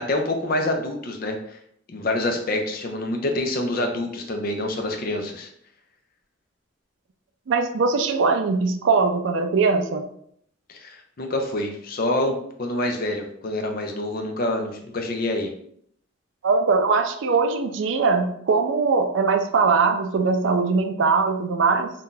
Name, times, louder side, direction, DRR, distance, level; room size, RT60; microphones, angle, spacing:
voice 1, 0.0-1.6 1.9-5.5 10.7-15.5, left 1 dB, 45° left, 3 dB, 0.5 m, -26 dB
voice 2, 7.5-10.0 16.4-21.9, right 4 dB, 65° right, 7 dB, 0.4 m, -21 dB
2.6 x 2.3 x 3.7 m, 0.68 s
head